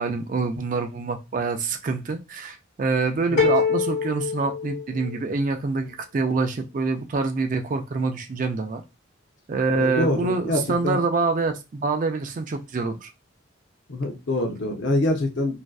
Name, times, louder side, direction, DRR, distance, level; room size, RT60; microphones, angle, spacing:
voice 1, 0.0-8.8 9.5-13.1, right 4 dB, 40° right, 0.3 m, -26 dB
sound 1, 3.4-5.4, left 5 dB, 90° left, 1.0 m, -24 dB
voice 2, 9.7-11.0 13.9-15.6, left 1 dB, 60° left, 0.6 m, -25 dB
2.5 x 2.2 x 2.3 m
head